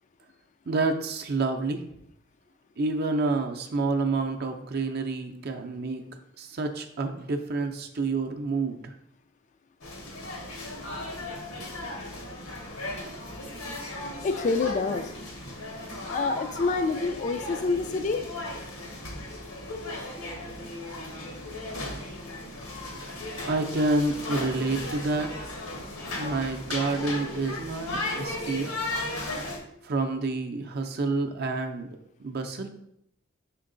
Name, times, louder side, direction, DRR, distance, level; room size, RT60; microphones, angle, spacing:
voice 1, 0.7-1.8 2.8-6.0 6.4-9.0 23.4-25.6 26.2-28.7 29.8-31.9 32.2-32.7, right 3 dB, 50° right, 4 dB, 0.5 m, -28 dB
sound 1, 9.8-29.6, left 2 dB, 90° left, 1.4 m, -36 dB
voice 2, 14.2-15.1 16.1-18.2, left 4 dB, 35° left, 8 dB, 0.3 m, -27 dB
6.1 x 4.4 x 3.8 m, 0.76 s
head